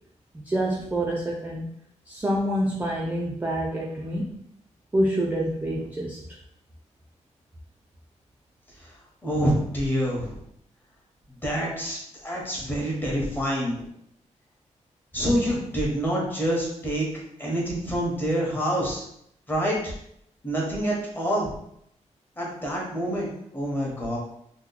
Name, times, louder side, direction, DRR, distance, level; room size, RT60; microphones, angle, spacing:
voice 1, 0.4-1.7 2.1-4.2 4.9-6.2, right 1 dB, 15° right, -3 dB, 0.3 m, -27 dB
voice 2, 9.2-10.4 11.4-13.9 15.1-17.1 17.4-19.0 19.5-19.9 20.4-21.5 22.4-24.2, equal, 15° left, -3 dB, 0.8 m, -27 dB
2.8 x 2.1 x 3.9 m, 0.72 s
wide cardioid pair, 170°, 12 cm